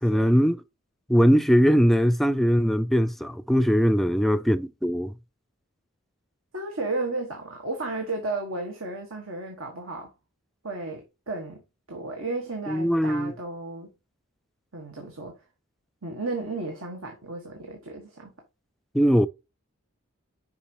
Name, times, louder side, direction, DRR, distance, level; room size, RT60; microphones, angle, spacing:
voice 1, 0.0-0.6 1.1-5.1 12.7-13.3 18.9-19.3, equal, ahead, 0.3 m, -21 dB
voice 2, 6.5-10.1 10.6-11.6 11.9-13.9 14.7-15.3 16.0-18.3, right 2 dB, 80° right, 1.5 m, -33 dB
7.0 x 5.1 x 2.9 m
head